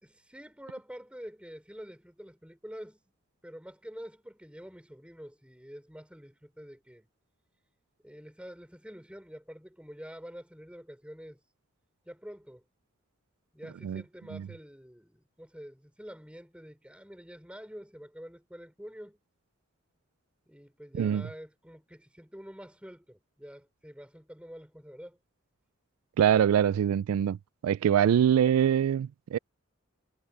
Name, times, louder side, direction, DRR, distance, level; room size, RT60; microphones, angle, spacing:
voice 1, 0.0-3.0 3.4-7.1 8.0-11.4 12.1-12.6 13.5-19.2 20.5-25.2, equal, 5° right, 5.4 m, -47 dB
voice 2, 26.2-27.4 27.6-29.4, right 9 dB, 90° right, 0.3 m, -24 dB
head